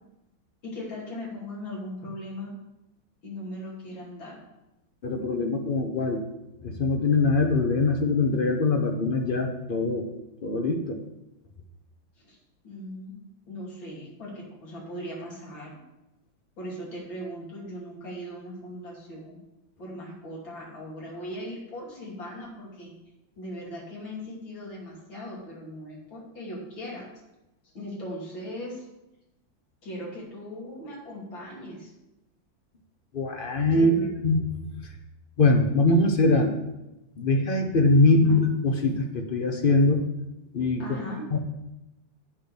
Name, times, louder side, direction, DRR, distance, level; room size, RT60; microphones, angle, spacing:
voice 1, 0.6-2.5 3.2-4.4 12.2-12.4 12.6-13.1 13.5-15.8 16.6-19.4 19.8-22.9 23.4-27.1 27.6-28.9 29.8-31.9 33.7-34.1 38.0-38.5 40.8-41.4, left 1 dB, 90° left, -4 dB, 3.4 m, -38 dB
voice 2, 5.0-6.2 6.6-10.1 10.4-11.0 33.1-33.9 34.2-34.5 35.4-36.5 37.2-40.0 40.5-41.0 41.3-41.4, left 2 dB, 60° left, 5 dB, 0.5 m, -22 dB
8.8 x 5.2 x 6.9 m, 0.96 s
omnidirectional pair, 2.0 m